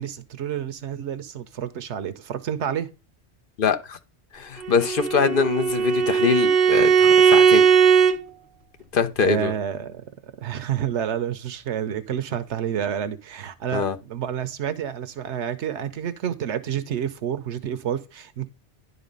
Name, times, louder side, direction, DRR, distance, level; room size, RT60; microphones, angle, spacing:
voice 1, 0.0-2.9 9.2-18.5, right 9 dB, 85° right, 1.0 m, -29 dB
voice 2, 3.6-4.0 4.3-7.6 8.9-9.5 13.7-14.0, left 6 dB, 55° left, 0.8 m, -23 dB
Bowed string instrument, 4.6-8.2, right 7 dB, 55° right, 1.3 m, -18 dB
11.0 x 4.1 x 5.2 m
omnidirectional pair, 1.2 m